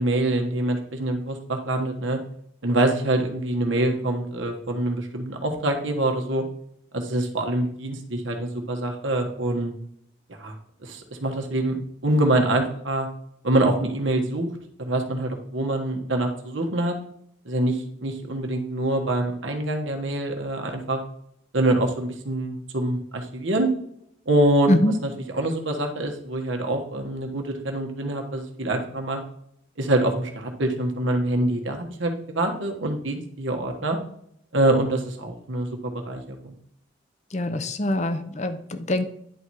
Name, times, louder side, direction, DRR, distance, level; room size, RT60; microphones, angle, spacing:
voice 1, 0.0-2.2 2.6-6.4 6.9-9.7 10.3-10.5 10.8-11.8 12.0-13.1 13.4-14.5 14.8-16.9 17.4-21.0 21.5-23.7 24.3-24.7 25.3-29.2 29.8-34.0 34.5-36.5, right 1 dB, 75° right, 3 dB, 1.3 m, -25 dB
voice 2, 37.3-39.0, left 1 dB, 35° left, 10 dB, 0.7 m, -24 dB
10.5 x 4.2 x 4.7 m, 0.70 s
head